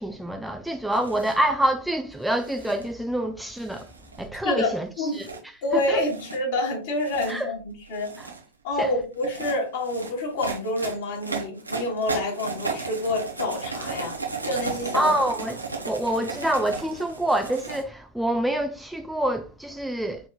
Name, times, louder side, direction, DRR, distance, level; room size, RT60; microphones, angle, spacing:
voice 1, 0.0-3.9 4.2-6.0 7.3-7.5 8.2-8.3 8.8-8.9 14.9-20.3, right 1 dB, 5° right, 0.4 m, -27 dB
sound 1, 0.9-1.4 2.3-2.9 3.6-4.3 5.1-5.4 5.9-6.4 6.9-7.4 7.9-8.4 9.1-17.8, right 4 dB, 85° right, 1.0 m, -35 dB
voice 2, 4.4-8.1 8.6-14.2 14.4-15.1, left 2 dB, 55° left, 1.8 m, -28 dB
4.4 x 4.3 x 2.3 m
figure-of-eight pair, 90°, 0 cm